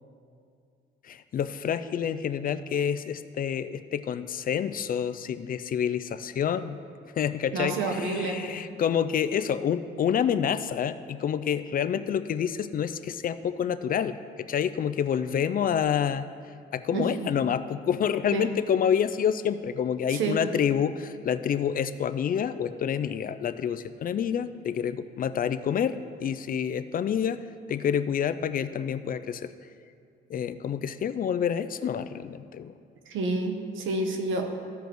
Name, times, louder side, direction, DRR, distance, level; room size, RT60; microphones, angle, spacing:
voice 1, 1.0-6.8 7.2-16.3 16.7-29.5 30.3-32.7, left 8 dB, 45° left, 12 dB, 0.4 m, -28 dB
voice 2, 7.5-8.6 16.9-17.1 18.3-18.5 20.1-20.4 33.1-34.4, right 3 dB, 75° right, 4 dB, 1.0 m, -29 dB
14.5 x 5.1 x 3.1 m, 2.3 s
cardioid pair, 90°, 20 cm